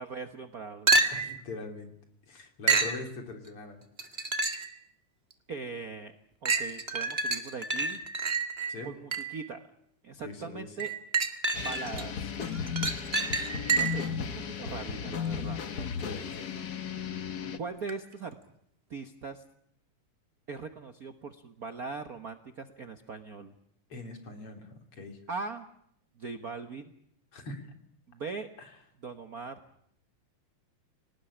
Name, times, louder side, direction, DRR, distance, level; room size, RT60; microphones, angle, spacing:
voice 1, 0.0-0.9 5.5-6.1 6.4-8.0 8.8-9.7 10.0-10.9 11.6-12.3 13.7-15.6 17.5-18.3 18.9-19.4 20.5-23.5 25.3-25.7 26.2-26.9 28.1-28.5 29.0-29.6, right 4 dB, 75° right, 8 dB, 0.8 m, -40 dB
sound 1, 0.9-1.4 2.7-3.0 4.0-4.7 5.3-5.4 6.4-9.4 10.8-12.0 12.4-14.1 17.9-18.0, right 4 dB, 25° right, 1.5 m, -28 dB
voice 2, 1.1-1.9 2.3-3.8 4.1-4.4 8.7-8.9 10.2-10.7 15.8-16.5 23.9-25.2 27.3-27.7 28.6-28.8, left 3 dB, 45° left, 5 dB, 3.9 m, -42 dB
sound 2, 11.5-17.6, left 7 dB, 60° left, 1.0 m, -35 dB
26.5 x 19.0 x 10.0 m, 0.72 s
omnidirectional pair, 3.6 m